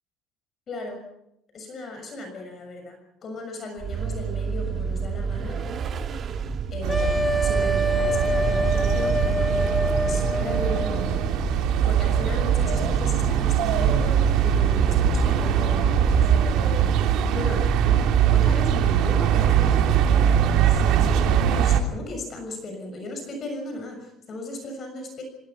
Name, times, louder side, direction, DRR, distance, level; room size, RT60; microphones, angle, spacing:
voice 1, 0.7-1.0 1.5-5.6 6.7-18.0 18.3-25.2, left 2 dB, 35° left, 5 dB, 6.6 m, -37 dB
Vehicle, 3.8-19.7, right 6 dB, 40° right, 1.7 m, -30 dB
sound 1, 6.8-21.8, right 9 dB, 70° right, 2.9 m, -22 dB
sound 2, 6.9-11.3, equal, 5° left, 1.1 m, -26 dB
30.0 x 18.5 x 5.9 m, 0.79 s
cardioid pair, 145°, 0 cm